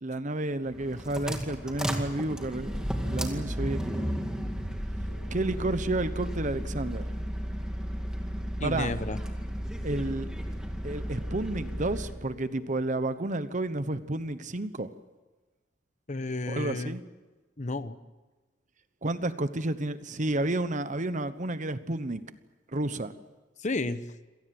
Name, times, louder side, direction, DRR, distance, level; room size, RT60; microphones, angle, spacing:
voice 1, 0.0-4.0 5.3-7.1 8.6-8.9 9.8-10.3 10.8-14.9 16.5-17.0 19.0-22.2 22.7-23.1, right 2 dB, 40° right, 12 dB, 1.1 m, -31 dB
sound 1, 0.7-12.2, equal, 5° right, 2.2 m, -34 dB
sound 2, 5.1-7.1 11.1-13.1, equal, 85° left, 2.5 m, -53 dB
voice 2, 8.6-9.2 16.1-17.0 17.6-18.0 23.6-24.0, left 2 dB, 40° left, 13 dB, 1.0 m, -31 dB
26.5 x 18.0 x 7.8 m, 1.2 s
head